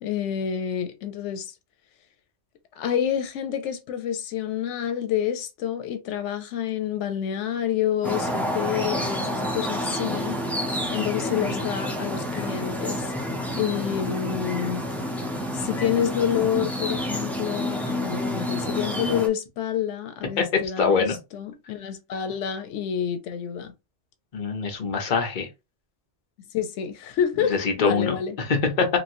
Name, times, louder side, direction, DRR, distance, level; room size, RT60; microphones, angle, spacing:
voice 1, 0.0-1.5 2.8-10.4 10.9-13.0 13.5-14.8 15.5-23.7 26.5-28.4, left 9 dB, 90° left, 0.9 m, -28 dB
sound 1, 8.0-19.3, equal, ahead, 0.5 m, -29 dB
voice 2, 20.8-21.2 24.3-25.5 27.5-28.9, left 5 dB, 50° left, 0.9 m, -24 dB
3.0 x 2.9 x 2.6 m
omnidirectional pair, 1.2 m